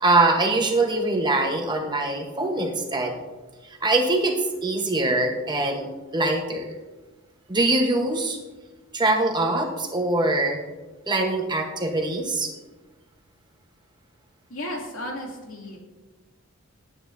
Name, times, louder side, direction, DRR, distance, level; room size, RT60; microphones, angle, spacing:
voice 1, 0.0-3.2 3.8-6.7 7.5-8.4 8.9-10.6 11.1-12.5, right 2 dB, 20° right, 2 dB, 1.1 m, -23 dB
voice 2, 14.5-15.8, left 1 dB, 65° left, -1 dB, 2.6 m, -34 dB
18.5 x 9.3 x 2.7 m, 1.2 s
head